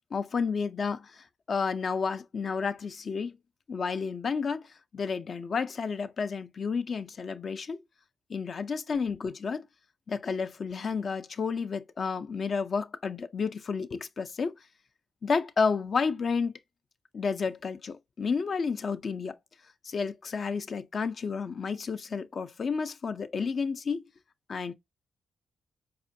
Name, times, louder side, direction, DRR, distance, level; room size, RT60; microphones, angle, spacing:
voice 1, 0.1-3.3 3.7-7.8 8.3-9.7 10.1-14.5 15.2-16.5 17.1-19.4 19.8-24.0 24.5-24.7, left 5 dB, 55° left, 0.4 m, -31 dB
4.4 x 2.3 x 2.6 m
supercardioid pair, 55°, 0 cm